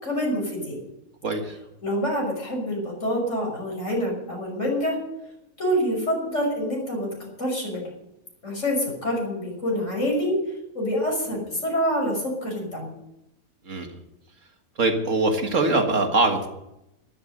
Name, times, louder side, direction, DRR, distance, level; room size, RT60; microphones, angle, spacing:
voice 1, 0.0-0.8 1.8-5.0 5.6-7.1 7.4-7.9 8.4-10.3 10.7-12.9, equal, 60° left, -1 dB, 6.3 m, -26 dB
voice 2, 1.2-1.6 13.7-14.0 14.8-16.5, right 2 dB, 60° right, 4 dB, 2.1 m, -23 dB
13.0 x 13.0 x 6.6 m, 0.87 s
omnidirectional pair, 1.5 m